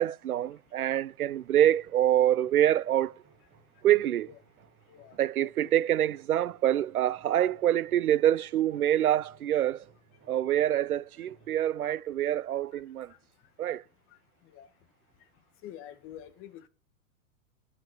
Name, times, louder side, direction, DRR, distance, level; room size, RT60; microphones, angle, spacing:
voice 1, 0.0-3.1 3.8-4.3 5.2-9.8 10.3-13.1 13.6-13.8, right 12 dB, 85° right, 0.5 m, -26 dB
sound 1, 1.1-11.5, right 4 dB, 25° right, 4.5 m, -62 dB
voice 2, 4.9-5.7 13.1-13.2 14.4-14.7 15.6-16.7, left 11 dB, 30° left, 1.1 m, -48 dB
11.5 x 4.2 x 6.9 m
hypercardioid pair, 115°, 42 cm